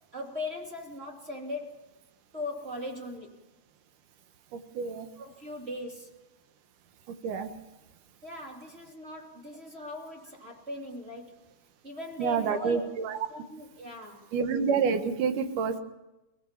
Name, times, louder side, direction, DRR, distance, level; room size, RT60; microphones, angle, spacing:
voice 1, 0.1-1.9 2.3-3.4 5.1-6.1 8.2-11.4 11.8-12.9 13.3-14.3, left 2 dB, 20° right, 0 dB, 2.6 m, -39 dB
voice 2, 4.8-5.1 7.2-7.5 12.2-13.1 14.3-15.8, right 6 dB, 75° right, 8 dB, 2.9 m, -28 dB
24.5 x 18.0 x 7.3 m, 0.98 s
omnidirectional pair, 3.8 m